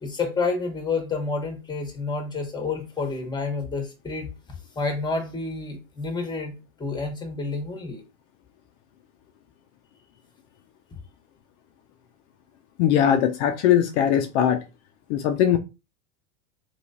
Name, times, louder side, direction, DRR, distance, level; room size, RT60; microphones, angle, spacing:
voice 1, 0.0-4.3 4.7-6.5 6.8-8.0, left 4 dB, 10° left, 1.1 m, -29 dB
voice 2, 12.8-14.6 15.1-15.6, left 10 dB, 60° left, 0.6 m, -20 dB
3.1 x 3.0 x 2.7 m
hypercardioid pair, 105°, 40 cm